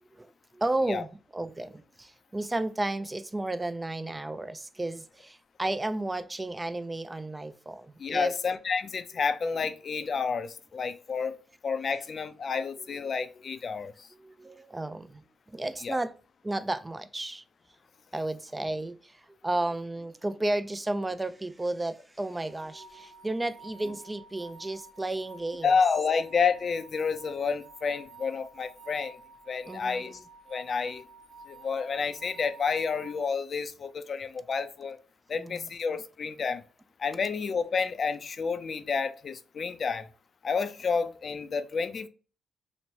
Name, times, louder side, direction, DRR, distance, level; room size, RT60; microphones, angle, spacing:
voice 1, 0.0-8.3 12.6-13.0 14.1-15.2 15.5-16.1 16.4-17.4 18.1-25.8 29.7-30.2 35.3-35.7, right 2 dB, 20° right, 0.3 m, -33 dB
voice 2, 8.0-11.4 11.6-14.1 15.8-16.0 25.6-29.2 29.5-30.2 30.5-31.0 31.5-35.0 35.3-36.6 37.0-40.1 40.4-42.1, left 5 dB, 50° left, 0.4 m, -30 dB
sound 1, 22.5-33.3, right 3 dB, 35° right, 1.1 m, -51 dB
3.0 x 2.1 x 2.7 m
supercardioid pair, 70°, 0 cm